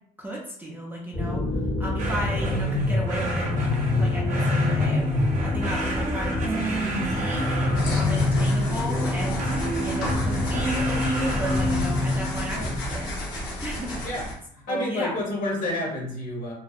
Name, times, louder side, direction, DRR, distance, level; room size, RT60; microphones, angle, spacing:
voice 1, 0.2-1.4 1.8-5.1 5.4-7.5 7.9-13.1 13.6-14.0 14.7-15.2, right 1 dB, 10° right, -2 dB, 0.4 m, -34 dB
sound 1, 1.1-13.1, left 2 dB, 25° left, 0.7 m, -27 dB
sound 2, 2.0-8.4 9.4-12.0, equal, 50° right, 0.7 m, -28 dB
sound 3, 7.7-14.3, left 1 dB, 90° left, 0.8 m, -32 dB
voice 2, 14.5-16.5, left 1 dB, 55° left, -2 dB, 1.1 m, -29 dB
2.6 x 2.0 x 2.4 m, 0.68 s
cardioid pair, 110°, 17 cm